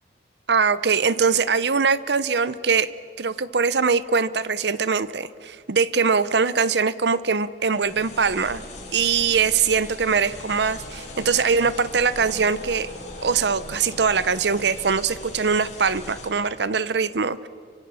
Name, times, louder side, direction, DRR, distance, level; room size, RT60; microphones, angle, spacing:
voice 1, 0.5-8.6 8.9-12.9 13.2-17.5, right 5 dB, 60° right, 16 dB, 0.7 m, -22 dB
sound 1, 7.7-16.3, left 1 dB, 35° left, 7.4 m, -39 dB
28.0 x 24.5 x 7.0 m, 2.3 s
head